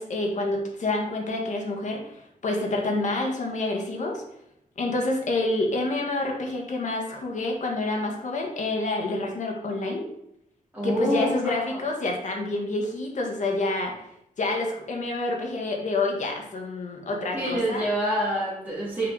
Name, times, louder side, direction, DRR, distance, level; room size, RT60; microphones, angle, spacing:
voice 1, 0.0-4.2 4.8-10.0 10.8-13.9 14.4-17.9, left 2 dB, 60° left, 1 dB, 1.5 m, -28 dB
voice 2, 10.7-11.8 17.3-19.1, equal, 15° right, -11 dB, 2.6 m, -27 dB
6.4 x 5.1 x 4.0 m, 0.78 s
wide cardioid pair, 145°, 14 cm